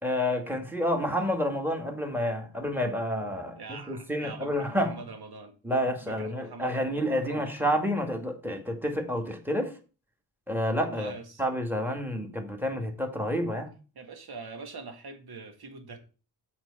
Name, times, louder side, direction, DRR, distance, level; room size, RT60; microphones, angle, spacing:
voice 1, 0.0-4.9 5.6-9.7 10.5-11.1 11.4-13.7, equal, 5° right, 1.9 m, -29 dB
voice 2, 3.6-5.5 6.0-7.7 10.9-11.4 14.0-16.0, right 4 dB, 80° right, 1.9 m, -43 dB
7.9 x 4.2 x 7.0 m
wide cardioid pair, 105°, 38 cm